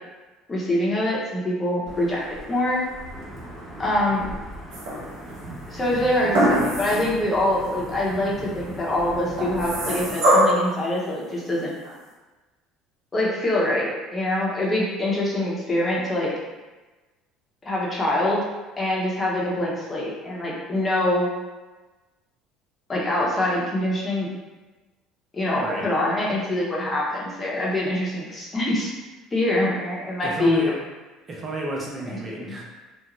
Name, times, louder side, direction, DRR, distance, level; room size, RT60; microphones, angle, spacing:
voice 1, 0.5-2.2 2.5-2.8 3.8-4.3 5.7-11.7 13.1-16.3 17.6-18.4 18.8-21.3 22.9-24.3 25.3-28.9 29.3-30.6 32.1-32.6, left 1 dB, 25° left, -5 dB, 0.8 m, -24 dB
Wind / Thunder / Rain, 1.9-10.1, right 1 dB, 10° right, 1.0 m, -39 dB
sound 1, 4.7-5.3 6.3-7.2 7.6-7.7 9.4-10.7 11.8-11.9, equal, 85° right, 0.7 m, -22 dB
voice 2, 30.2-30.8 31.3-32.6, right 2 dB, 30° right, -3 dB, 0.5 m, -31 dB
2.5 x 2.0 x 3.0 m, 1.2 s
supercardioid pair, 85°, 0 cm